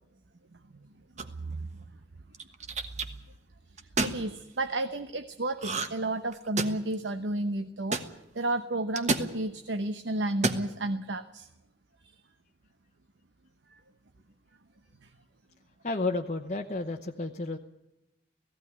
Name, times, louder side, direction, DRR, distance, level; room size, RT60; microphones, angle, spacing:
sound 1, 1.2-1.5 2.3-3.1 3.8-4.2 5.6-6.1 6.3-6.9 7.9-8.1 9.0-9.3 10.3-10.7, right 3 dB, 40° right, 1.3 m, -29 dB
voice 1, 1.2-1.8 3.0-3.2 3.8-8.0 8.3-11.5 12.1-12.2 13.7-13.8 15.0-15.1, right 2 dB, 75° right, 9 dB, 0.9 m, -32 dB
voice 2, 15.8-17.6, left 3 dB, 40° left, 3 dB, 0.9 m, -31 dB
18.0 x 15.5 x 9.7 m, 0.92 s
head